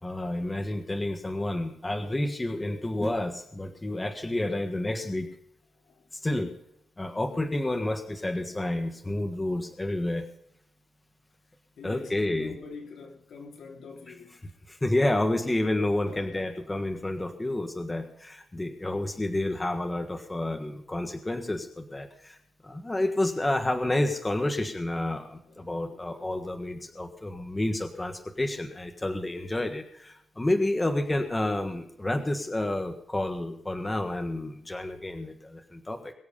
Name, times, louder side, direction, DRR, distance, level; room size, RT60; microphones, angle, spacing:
voice 1, 0.0-5.3 6.1-6.5 7.0-10.2 11.8-12.5 14.7-22.4 22.6-36.1, left 1 dB, 15° left, 1.5 m, -30 dB
voice 2, 11.8-14.5 14.8-15.0 16.0-16.5 25.5-26.3 26.6-26.7, left 4 dB, 75° left, 3.2 m, -46 dB
22.5 x 7.9 x 5.4 m
wide cardioid pair, 135°, 0 cm